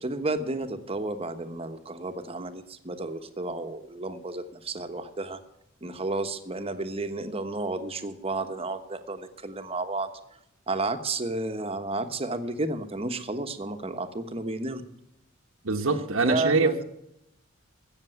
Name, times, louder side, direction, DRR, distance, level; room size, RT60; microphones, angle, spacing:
voice 1, 0.0-5.4 5.8-10.1 10.7-14.8 16.2-16.8, right 2 dB, 30° right, 1.1 m, -32 dB
voice 2, 15.6-16.8, right 3 dB, 80° right, 1.3 m, -24 dB
15.5 x 7.0 x 9.3 m
head